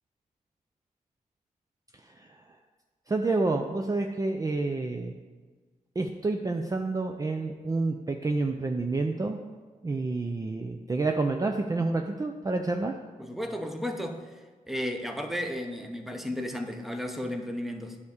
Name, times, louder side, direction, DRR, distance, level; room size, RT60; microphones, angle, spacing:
voice 1, 3.1-5.1 6.0-9.4 9.8-13.0, right 3 dB, 25° right, 3 dB, 0.5 m, -29 dB
voice 2, 13.2-14.3 14.7-18.0, left 1 dB, ahead, 4 dB, 0.8 m, -33 dB
9.6 x 3.5 x 6.5 m, 1.4 s
wide cardioid pair, 90°, 14 cm